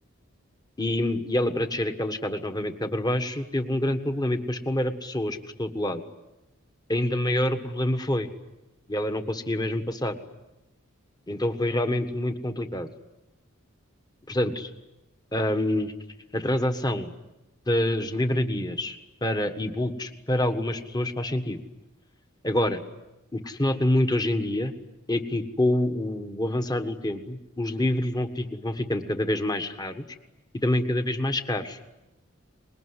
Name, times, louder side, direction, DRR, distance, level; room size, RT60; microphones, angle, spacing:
voice 1, 0.8-6.0 6.9-8.3 8.9-10.2 11.3-12.9 14.3-14.7 15.3-15.9 16.3-17.1 17.7-19.0 19.2-21.6 22.4-22.8 23.3-24.7 25.1-30.0 30.6-31.8, left 1 dB, 20° left, 7 dB, 1.6 m, -26 dB
24.5 x 21.5 x 9.8 m, 0.97 s
head